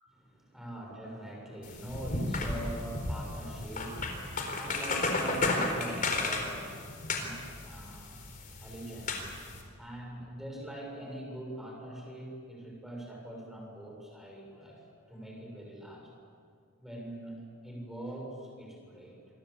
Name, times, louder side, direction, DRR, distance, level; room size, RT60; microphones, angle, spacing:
voice 1, 0.1-8.3 8.6-9.3 9.8-16.1 16.8-19.2, right 1 dB, ahead, -1 dB, 6.9 m, -43 dB
sound 1, 1.6-9.6, left 2 dB, 40° left, 4.2 m, -34 dB
27.5 x 24.0 x 8.4 m, 2.3 s
head